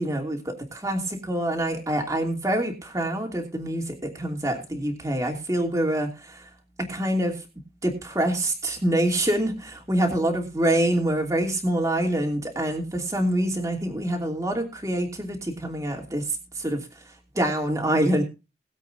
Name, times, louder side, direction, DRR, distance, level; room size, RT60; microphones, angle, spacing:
voice 1, 0.0-6.5 6.8-7.4 7.8-18.2, right 1 dB, 15° right, 2 dB, 2.8 m, -26 dB
21.0 x 8.2 x 2.7 m, 0.29 s
head